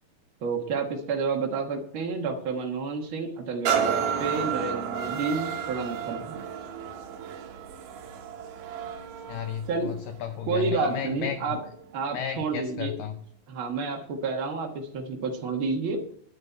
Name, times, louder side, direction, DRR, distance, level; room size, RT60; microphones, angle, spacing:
voice 1, 0.4-6.4 9.7-9.9 10.5-11.6 11.9-12.9 13.5-16.0, right 4 dB, 85° right, 1 dB, 1.1 m, -30 dB
sound 1, 3.7-11.3 11.8-11.9, right 7 dB, 65° right, 2.2 m, -32 dB
voice 2, 9.3-11.6 12.1-13.2, left 9 dB, 85° left, 8 dB, 1.9 m, -34 dB
9.9 x 9.6 x 4.5 m, 0.63 s
omnidirectional pair, 4.6 m